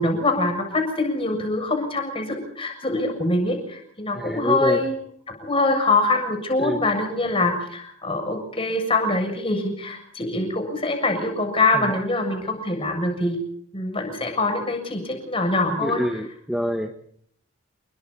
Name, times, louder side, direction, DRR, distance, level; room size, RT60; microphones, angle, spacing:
voice 1, 0.0-4.9 5.4-13.4 13.7-16.0, left 2 dB, 25° left, 5 dB, 7.1 m, -24 dB
voice 2, 4.1-4.8 6.6-6.8 11.7-11.8 15.8-16.9, equal, ahead, 5 dB, 1.3 m, -26 dB
29.5 x 23.0 x 4.2 m, 0.66 s
head